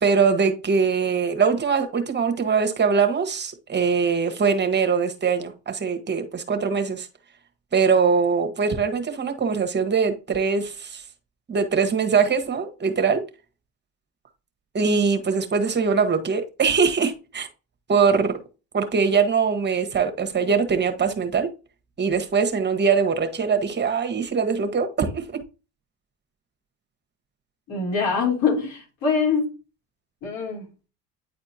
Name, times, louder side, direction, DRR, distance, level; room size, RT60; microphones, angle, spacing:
voice 1, 0.0-7.1 7.7-11.0 11.5-13.2 14.7-17.5 17.9-18.4 18.7-21.5 22.0-25.4, right 5 dB, 30° right, 1.3 m, -22 dB
voice 2, 27.7-29.5 30.2-30.7, left 5 dB, 75° left, 3.7 m, -24 dB
9.5 x 4.3 x 2.8 m
supercardioid pair, 90°, 35 cm